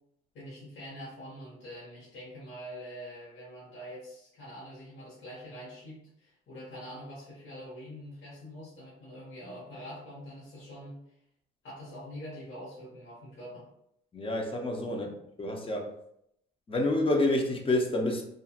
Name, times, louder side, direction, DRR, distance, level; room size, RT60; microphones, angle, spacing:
voice 1, 0.3-11.0 11.6-13.7 14.8-15.1, equal, 75° left, -7 dB, 1.2 m, -45 dB
voice 2, 14.1-15.1 15.4-15.9 16.7-18.2, left 2 dB, 25° left, 2 dB, 0.6 m, -28 dB
2.7 x 2.6 x 2.4 m, 0.75 s
cardioid pair, 90°, 20 cm